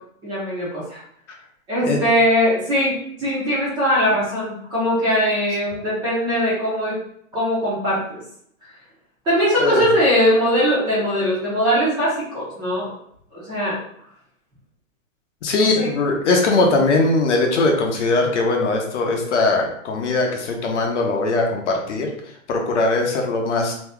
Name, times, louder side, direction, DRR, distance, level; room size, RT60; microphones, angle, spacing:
voice 1, 0.2-1.0 1.7-7.0 7.3-8.2 9.2-12.9 13.3-13.8 15.5-15.9, equal, 10° right, -9 dB, 0.7 m, -20 dB
voice 2, 15.4-22.1 22.5-23.7, left 3 dB, 60° left, 1 dB, 0.8 m, -20 dB
2.8 x 2.2 x 3.4 m, 0.66 s
hypercardioid pair, 155°, 41 cm